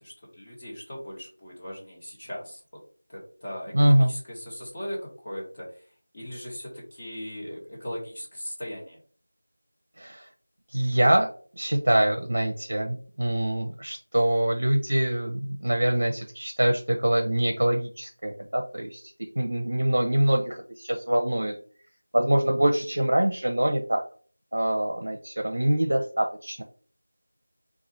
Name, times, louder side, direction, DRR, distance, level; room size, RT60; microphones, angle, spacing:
voice 1, 0.0-2.8 3.1-5.9 6.1-9.0, equal, 20° left, -4 dB, 1.4 m, -38 dB
voice 2, 3.7-4.1 10.0-10.2 10.7-11.3 11.6-21.5 22.1-24.0 24.5-26.6, right 1 dB, 55° right, 3 dB, 0.7 m, -24 dB
4.0 x 2.4 x 4.3 m, 0.42 s
figure-of-eight pair, 180°, 0 cm